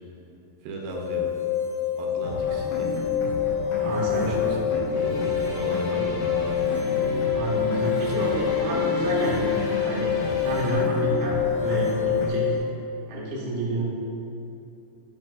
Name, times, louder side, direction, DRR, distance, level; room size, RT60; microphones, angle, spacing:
voice 1, 0.6-1.3 2.0-2.9 3.8-6.6 8.0-8.1, right 2 dB, 85° right, 0 dB, 2.6 m, -36 dB
sound 1, 0.9-12.6, left 8 dB, 50° left, 2.2 m, -26 dB
sound 2, 2.2-12.3, left 2 dB, 85° left, 1.5 m, -34 dB
voice 2, 3.8-4.3 5.8-6.0 7.3-10.1 10.4-12.5 13.1-13.8, right 2 dB, 60° right, -7 dB, 1.4 m, -29 dB
sound 3, 4.9-10.7, left 2 dB, 70° left, 2.0 m, -36 dB
9.5 x 5.5 x 2.4 m, 2.7 s
omnidirectional pair, 4.3 m